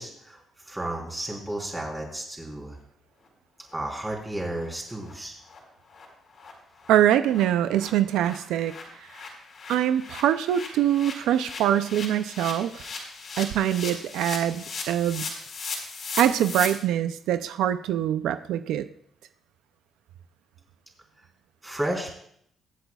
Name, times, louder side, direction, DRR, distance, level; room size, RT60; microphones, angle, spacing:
voice 1, 0.0-2.8 3.7-5.4 21.6-22.2, right 1 dB, 10° right, -1 dB, 3.5 m, -33 dB
sound 1, 3.7-3.8 4.1-4.2 4.6-4.7 5.0-5.1 5.5-5.6 5.9-6.0 6.4-6.5 6.8-16.7, left 4 dB, 55° left, 4.0 m, -38 dB
voice 2, 6.9-8.7 9.7-12.9 13.4-15.3 16.2-18.9, right 11 dB, 90° right, 12 dB, 0.4 m, -24 dB
23.5 x 8.2 x 2.3 m, 0.68 s
cardioid pair, 90°, 0 cm